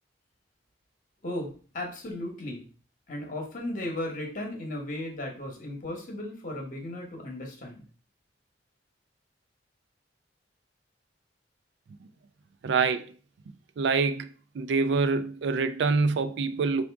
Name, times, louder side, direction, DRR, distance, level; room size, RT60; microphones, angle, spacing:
voice 1, 1.2-2.6 3.1-7.8, left 1 dB, 45° left, 0.9 m, -35 dB
voice 2, 12.6-13.1 13.8-14.3 14.5-16.8, right 4 dB, 65° right, 0.3 m, -25 dB
4.8 x 2.5 x 3.4 m
head